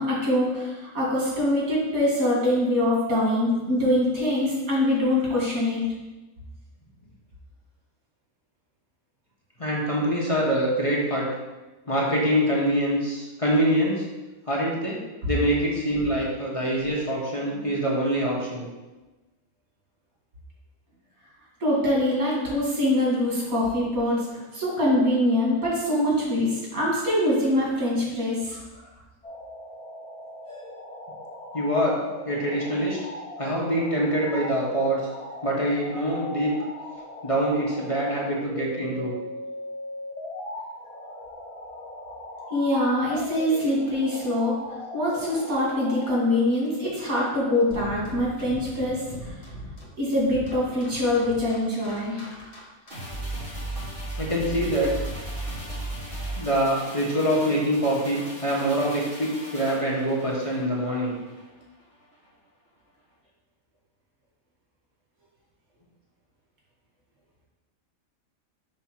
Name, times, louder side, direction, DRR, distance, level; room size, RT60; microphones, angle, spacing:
voice 1, 0.0-5.8 15.2-15.3 17.5-17.7 21.6-28.6 42.5-44.6 44.9-49.3 50.0-52.2, left 1 dB, 90° right, -5 dB, 2.5 m, -24 dB
voice 2, 9.6-11.3 11.9-14.0 14.5-15.0 15.3-18.7 28.5-28.6 31.5-33.0 33.4-35.1 35.4-36.6 37.2-39.1 54.2-54.9 56.4-61.1, equal, 25° left, -4 dB, 1.0 m, -25 dB
sound 1, 29.2-46.1, left 1 dB, 5° left, 1.3 m, -39 dB
sound 2, 47.7-53.2, equal, 50° left, 1.4 m, -41 dB
sound 3, 52.9-61.5 61.8-61.9, right 1 dB, 40° right, 2.5 m, -36 dB
5.4 x 3.6 x 5.8 m, 1.1 s
omnidirectional pair, 1.5 m